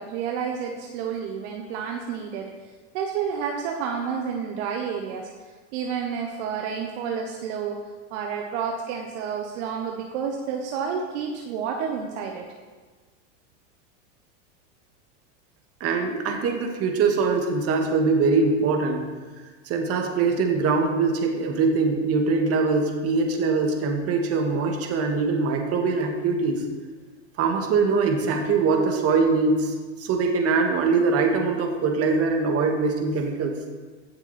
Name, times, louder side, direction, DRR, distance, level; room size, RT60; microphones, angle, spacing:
voice 1, 0.0-2.5 2.9-5.3 5.7-7.8 8.1-12.5, right 6 dB, 60° right, 1 dB, 1.3 m, -30 dB
voice 2, 15.8-19.0 19.7-26.6 27.4-33.5, right 4 dB, 35° right, 2 dB, 2.0 m, -23 dB
16.0 x 6.9 x 4.3 m, 1.4 s
supercardioid pair, 120°, 39 cm